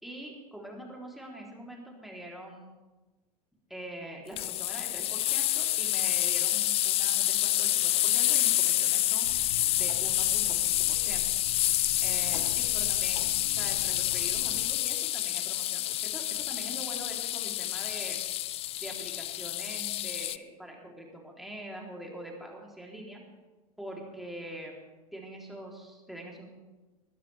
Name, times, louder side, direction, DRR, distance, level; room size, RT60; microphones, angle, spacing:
voice 1, 0.0-2.7 3.7-9.3 9.8-11.2 12.0-18.2 18.8-23.2 23.8-24.8 25.1-26.5, right 1 dB, ahead, -1 dB, 3.6 m, -44 dB
sound 1, 4.4-20.4, left 14 dB, 30° left, 0.4 m, -28 dB
sound 2, 9.2-14.7, left 4 dB, 80° left, 1.5 m, -44 dB
22.0 x 12.5 x 3.5 m, 1.2 s
hypercardioid pair, 90°, 20 cm